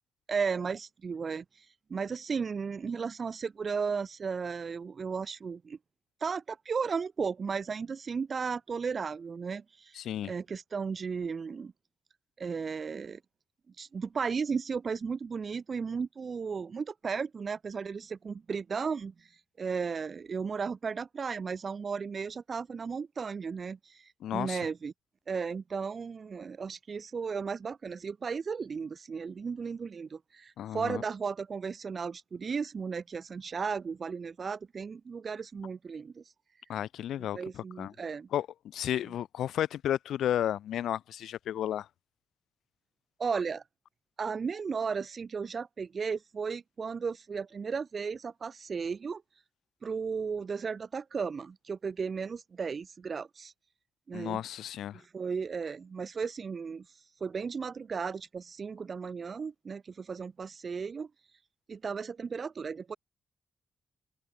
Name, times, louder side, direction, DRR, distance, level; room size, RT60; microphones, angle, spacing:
voice 1, 0.3-1.6 1.9-5.8 6.2-11.7 12.4-13.2 13.8-19.1 19.6-24.9 25.3-36.2 37.3-38.3 43.2-43.6 44.2-49.2 49.8-53.5 54.1-54.4 55.1-56.8 57.2-61.1 61.7-63.0, right 5 dB, 50° right, 6.4 m, -35 dB
voice 2, 9.9-10.3 24.2-24.6 30.6-31.0 36.7-37.9 38.3-38.5 38.7-41.9 54.1-55.0, left 11 dB, 75° left, 3.1 m, -33 dB
supercardioid pair, 45°, 0 cm